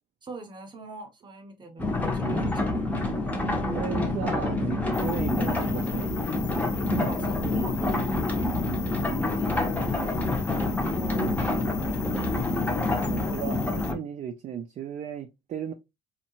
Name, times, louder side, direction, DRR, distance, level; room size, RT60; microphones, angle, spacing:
voice 1, 0.2-2.9 6.9-8.0 9.2-10.3 10.9-11.5, right 3 dB, 25° right, 0.8 m, -43 dB
sound 1, 1.8-14.0, left 2 dB, 10° left, 0.6 m, -27 dB
voice 2, 3.5-6.1 12.9-15.7, right 8 dB, 45° right, 0.4 m, -35 dB
sound 2, 4.9-13.9, left 12 dB, 75° left, 0.4 m, -42 dB
2.7 x 2.1 x 2.8 m
cardioid pair, 110°, 17 cm